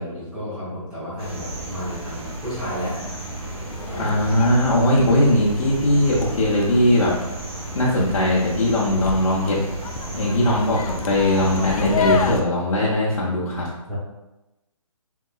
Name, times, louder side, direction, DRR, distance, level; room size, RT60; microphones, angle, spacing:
voice 1, 0.0-3.0 3.9-4.1 10.0-10.2 13.9-14.0, equal, 5° right, -11 dB, 0.6 m, -32 dB
sound 1, 1.2-12.4, right 2 dB, 45° right, 0.9 m, -34 dB
sound 2, 2.4-12.4, left 5 dB, 90° left, 0.4 m, -31 dB
voice 2, 4.0-7.1 7.7-9.6 10.1-13.7, left 1 dB, 70° left, -5 dB, 0.8 m, -19 dB
3.5 x 2.9 x 2.3 m, 0.98 s
hypercardioid pair, 165°, 18 cm